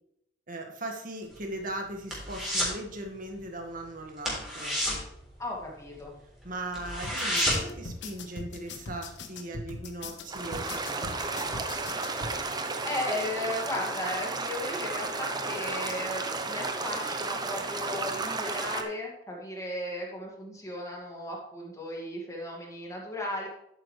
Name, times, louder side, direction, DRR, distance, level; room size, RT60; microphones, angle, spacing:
voice 1, 0.5-4.8 6.4-11.5, right 1 dB, 50° right, 3 dB, 1.9 m, -39 dB
sound 1, 1.2-2.8 3.1-3.4 3.7-3.8 4.2-6.0 6.4-6.5 6.7-7.8 8.2-8.3, equal, 5° right, 3.8 m, -30 dB
voice 2, 5.4-6.1 12.8-23.5, left 1 dB, 20° left, -2 dB, 2.2 m, -35 dB
sound 2, 7.0-12.3, left 3 dB, 80° left, 1.3 m, -40 dB
sound 3, 10.3-18.8, right 3 dB, 25° right, 0.9 m, -33 dB
11.0 x 8.7 x 3.3 m, 0.81 s
head